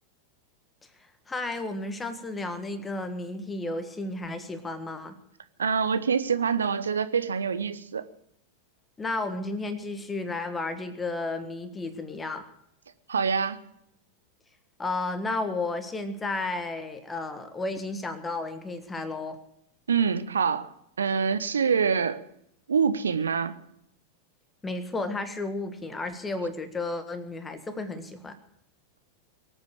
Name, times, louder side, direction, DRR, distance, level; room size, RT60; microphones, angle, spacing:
voice 1, 1.3-5.2 9.0-12.4 14.8-19.4 24.6-28.4, left 2 dB, 15° left, 1.5 m, -33 dB
voice 2, 5.6-8.0 13.1-13.6 19.9-20.7 21.0-22.2 22.7-23.6, right 6 dB, 70° right, 1.0 m, -25 dB
23.0 x 8.8 x 6.4 m
figure-of-eight pair, 90°, 0 cm